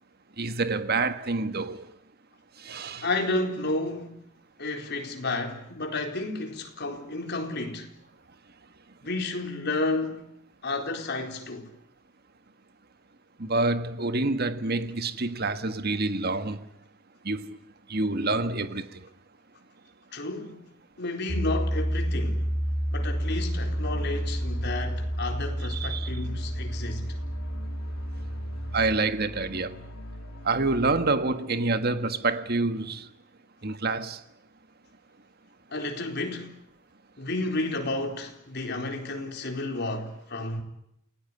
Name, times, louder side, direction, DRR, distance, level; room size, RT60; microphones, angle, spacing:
voice 1, 0.4-1.9 2.6-3.1 13.4-16.6 17.2-17.6 17.9-19.0 25.7-26.1 28.7-29.8 30.4-33.1 33.6-34.2, right 3 dB, 50° right, 1.6 m, -27 dB
voice 2, 3.0-4.2 4.6-7.9 9.0-10.3 10.6-11.7 20.1-20.7 21.0-22.5 22.9-27.2 35.7-36.6 37.2-40.6, left 2 dB, 55° left, 4.2 m, -31 dB
Piano, 21.3-29.0, equal, ahead, 5.7 m, -30 dB
sound 1, 23.0-31.4, equal, 80° left, 1.8 m, -44 dB
28.5 x 18.0 x 9.8 m
head